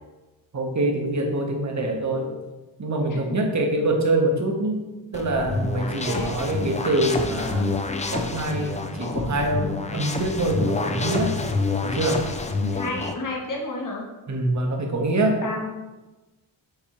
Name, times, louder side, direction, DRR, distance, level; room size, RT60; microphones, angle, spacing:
voice 1, 0.5-2.4 2.8-4.9 5.1-7.7 8.1-11.3 11.8-12.2 14.3-15.5, right 1 dB, 35° right, 2 dB, 1.1 m, -24 dB
sound 1, 5.1-13.1, left 3 dB, 15° left, 0.4 m, -28 dB
voice 2, 5.8-6.3 12.7-14.0 15.4-15.7, left 2 dB, 40° left, -1 dB, 1.2 m, -32 dB
6.7 x 2.6 x 3.0 m, 1.1 s
cardioid pair, 60°, 49 cm